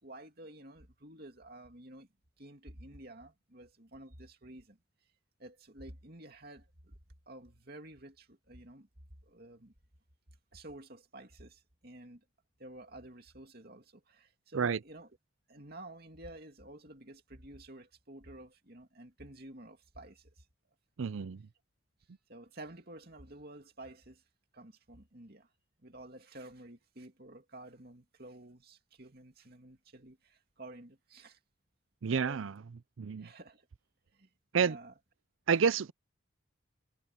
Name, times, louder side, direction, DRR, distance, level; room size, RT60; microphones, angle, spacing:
voice 1, 0.0-2.1 2.4-4.8 5.4-7.0 7.3-8.9 9.3-9.7 10.5-12.2 12.6-15.1 15.5-20.5 22.3-24.2 24.5-25.5 25.8-31.4 32.1-32.5 33.2-33.7 34.1-34.3 34.6-34.9, right 1 dB, 50° right, 2.7 m, -51 dB
voice 2, 21.0-21.5 32.0-32.6 33.0-33.3 34.5-34.8 35.5-35.9, right 6 dB, 75° right, 0.5 m, -29 dB
head